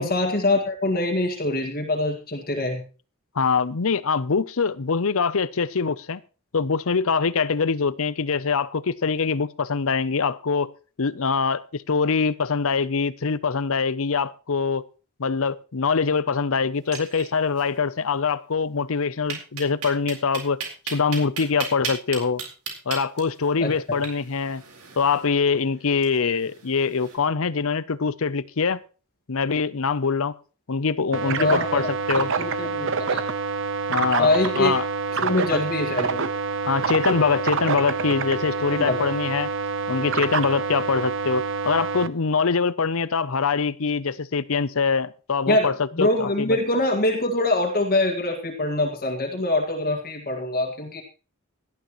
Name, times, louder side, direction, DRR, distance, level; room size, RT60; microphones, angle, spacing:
voice 1, 0.0-2.8 23.6-24.0 31.3-31.9 32.4-33.2 34.2-34.7 35.2-36.3 38.7-39.1 45.5-51.0, left 2 dB, 45° left, 1.9 m, -24 dB
voice 2, 3.4-6.2 6.5-10.7 11.0-14.8 15.2-20.6 20.9-22.4 22.9-24.6 25.0-28.8 29.3-30.3 30.7-32.3 33.9-34.9 35.5-35.6 36.6-39.5 39.9-46.6, left 5 dB, 65° left, 0.7 m, -24 dB
sound 1, 16.8-17.7 17.9-18.0 18.3-18.4 19.3-27.2, right 6 dB, 90° right, 4.3 m, -36 dB
sound 2, 31.1-42.1, right 5 dB, 60° right, 0.9 m, -27 dB
17.5 x 12.0 x 3.1 m
head